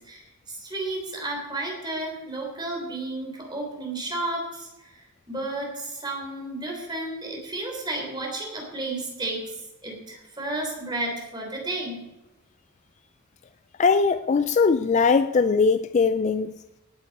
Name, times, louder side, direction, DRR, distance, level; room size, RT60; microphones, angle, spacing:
voice 1, 0.0-5.0 5.3-9.6 9.8-12.0, right 2 dB, 20° right, 0 dB, 3.5 m, -32 dB
voice 2, 13.8-16.5, left 5 dB, 30° left, 11 dB, 0.3 m, -20 dB
18.5 x 8.9 x 4.2 m, 0.99 s
head